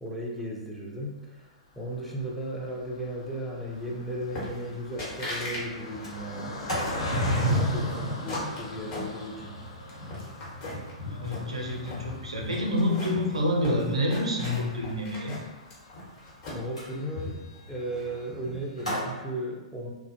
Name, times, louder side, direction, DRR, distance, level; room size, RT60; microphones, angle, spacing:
voice 1, 0.0-6.6 7.1-9.6 16.5-19.9, equal, ahead, -4 dB, 0.4 m, -36 dB
Car passing by, 1.7-17.2 17.7-17.8 18.0-18.2, left 1 dB, 60° left, 0.5 m, -42 dB
Sliding door, 4.3-4.4 4.7-4.8 5.2-5.5 5.8-13.8 14.3-14.8 16.8-19.1, equal, 85° left, 1.0 m, -34 dB
sound 1, 4.4-4.7 5.0-5.6 6.0-7.1 7.6-9.5 9.9-10.9 11.3-12.0 12.5-14.6 14.8-16.8, left 1 dB, 35° left, 0.9 m, -38 dB
voice 2, 11.0-15.4, left 1 dB, 75° right, -1 dB, 0.5 m, -28 dB
2.4 x 2.1 x 2.6 m, 1.1 s
figure-of-eight pair, 105°, 3 cm